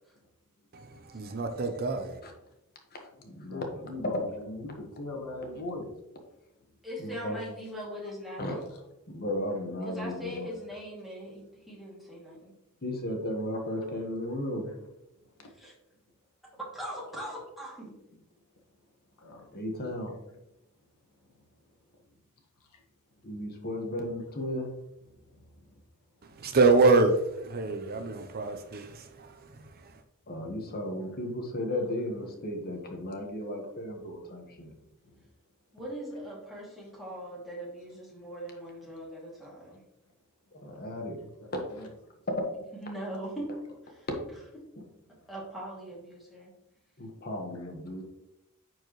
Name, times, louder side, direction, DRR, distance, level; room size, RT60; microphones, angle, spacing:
voice 1, 0.7-2.2 26.4-29.5, right 3 dB, 45° right, 0.6 m, -26 dB
voice 2, 2.9-3.6 7.0-7.4 8.4-8.5 9.1-10.4 12.8-14.7 19.5-20.1 23.2-24.7 30.3-34.7 40.6-41.1 41.5-41.6 47.0-48.0, left 1 dB, 45° left, 1.3 m, -35 dB
voice 3, 3.5-5.9 8.7-8.8 14.7-14.8 15.4-15.5 19.2-19.4 41.2-41.9 47.6-47.7, left 2 dB, 80° left, 1.6 m, -40 dB
voice 4, 6.8-8.7 9.8-12.5 15.5-15.7 16.7-17.9 35.7-39.8 42.7-43.5 43.8-44.1 45.3-46.5, equal, ahead, 2.4 m, -40 dB
9.8 x 4.7 x 3.1 m
head